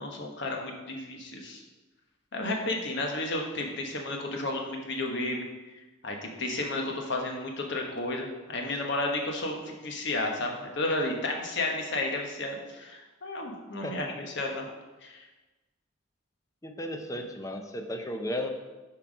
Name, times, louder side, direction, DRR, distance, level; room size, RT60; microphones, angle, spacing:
voice 1, 0.0-1.6 2.3-5.5 6.0-14.7 15.0-15.2, left 2 dB, 60° left, 2 dB, 1.2 m, -32 dB
voice 2, 16.6-18.5, left 1 dB, 15° left, 5 dB, 0.6 m, -34 dB
7.2 x 4.5 x 5.2 m, 1.2 s
head